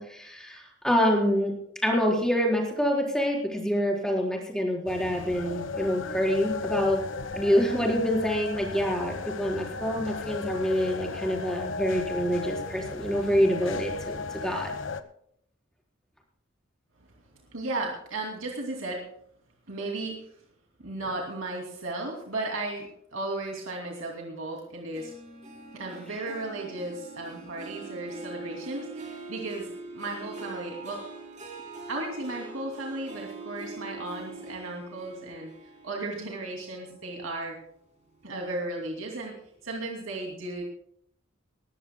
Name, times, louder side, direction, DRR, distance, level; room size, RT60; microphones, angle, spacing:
voice 1, 0.0-1.5 1.8-7.0 7.3-14.7, equal, 5° left, -1 dB, 4.2 m, -26 dB
sound 1, 4.9-15.0, left 4 dB, 70° left, 1.2 m, -35 dB
voice 2, 17.5-19.0 19.7-20.2 20.8-25.1 25.7-31.0 31.9-35.5 35.8-37.5 38.2-39.3 39.6-40.6, right 2 dB, 85° right, 0 dB, 2.6 m, -35 dB
Harp, 24.9-37.7 38.1-38.5 39.0-39.1, right 3 dB, 35° right, 3.6 m, -43 dB
21.0 x 16.0 x 2.2 m, 0.68 s
head